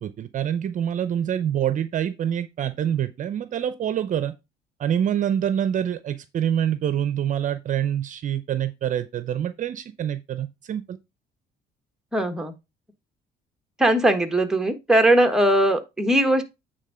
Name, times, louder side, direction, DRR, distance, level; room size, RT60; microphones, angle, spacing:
voice 1, 0.0-4.3 4.8-11.0, right 9 dB, 50° right, 0.6 m, -26 dB
voice 2, 12.1-12.5 13.8-16.4, right 1 dB, 5° right, 1.3 m, -20 dB
9.1 x 3.7 x 4.9 m
cardioid pair, 110°, 17 cm